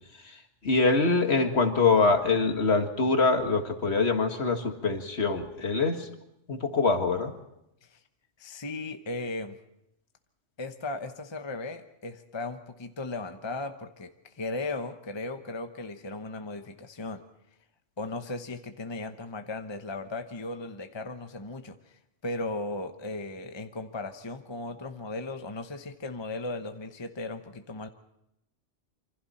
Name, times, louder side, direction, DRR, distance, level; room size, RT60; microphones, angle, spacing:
voice 1, 0.6-6.1 6.5-7.3, left 3 dB, 60° left, 5 dB, 2.1 m, -24 dB
voice 2, 8.4-9.6 10.6-17.2 18.0-27.9, left 2 dB, 25° left, 7 dB, 1.0 m, -36 dB
27.0 x 25.0 x 4.3 m, 0.82 s
omnidirectional pair, 1.3 m